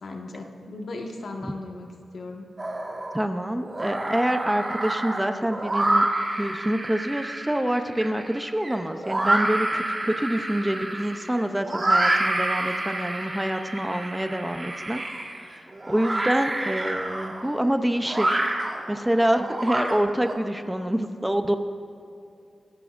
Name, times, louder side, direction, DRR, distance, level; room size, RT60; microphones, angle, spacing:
voice 1, 0.0-2.4, left 2 dB, 65° left, 1 dB, 1.6 m, -37 dB
sound 1, 2.6-3.2 3.6-20.3, right 1 dB, 30° right, 1.7 m, -28 dB
voice 2, 3.1-6.1 6.4-15.0 15.4-18.4 18.9-21.6, right 1 dB, 10° right, 7 dB, 0.6 m, -26 dB
24.0 x 11.0 x 2.6 m, 2.7 s
wide cardioid pair, 100°, 0 cm